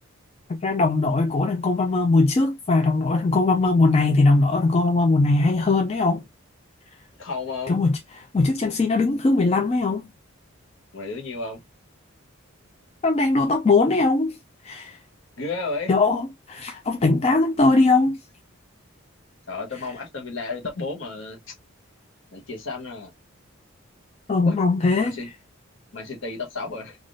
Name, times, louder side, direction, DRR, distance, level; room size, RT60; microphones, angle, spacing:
voice 1, 0.5-6.2 7.7-10.1 13.0-14.4 14.6-15.0 15.9-18.2 24.3-25.2, left 3 dB, 30° left, 0.3 m, -20 dB
voice 2, 7.2-7.8 10.9-11.6 15.4-15.9 19.5-21.5 22.3-23.1 24.4-24.6 24.9-25.3 25.9-27.0, left 3 dB, 65° left, 0.9 m, -32 dB
3.4 x 2.4 x 2.5 m
head